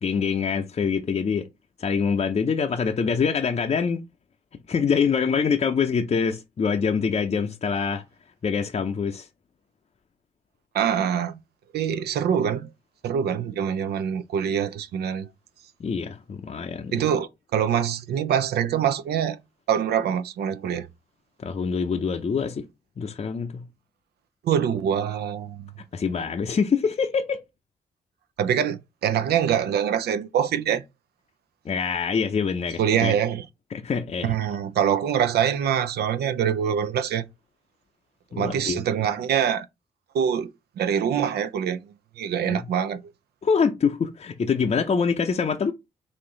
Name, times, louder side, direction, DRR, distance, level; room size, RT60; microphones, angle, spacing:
voice 1, 0.0-1.5 1.8-4.0 4.7-8.0 8.4-9.3 15.8-17.0 21.4-22.7 23.0-23.7 25.8-27.4 31.6-33.2 33.7-34.3 38.3-38.8 42.4-42.7 43.4-45.7, left 6 dB, 40° left, 0.6 m, -25 dB
voice 2, 10.7-11.4 11.7-12.7 13.0-15.3 16.9-19.4 19.7-20.9 24.4-25.7 28.4-30.8 32.8-33.4 34.2-37.2 38.4-39.7 40.1-40.5 40.8-41.8 42.2-43.0, right 8 dB, 75° right, 0.4 m, -24 dB
4.3 x 2.6 x 3.7 m
supercardioid pair, 50°, 17 cm